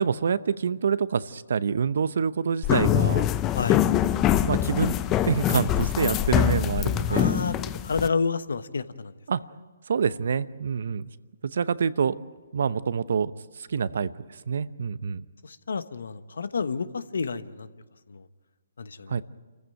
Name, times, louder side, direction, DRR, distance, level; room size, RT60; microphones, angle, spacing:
voice 1, 0.0-3.2 4.4-5.0 5.2-7.5 9.3-9.4 9.9-11.1 11.4-12.2 12.5-13.3 13.6-14.1 14.5-15.3 19.1-19.2, right 6 dB, 65° right, 16 dB, 0.8 m, -26 dB
sound 1, 2.6-8.1, left 11 dB, 20° left, 0.6 m, -24 dB
voice 2, 3.5-3.8 7.1-7.6 7.8-9.1 15.4-17.7 18.1-18.2 18.8-19.2, left 5 dB, 75° left, 13 dB, 1.1 m, -29 dB
27.5 x 15.0 x 9.1 m, 1.4 s
hypercardioid pair, 145°, 0 cm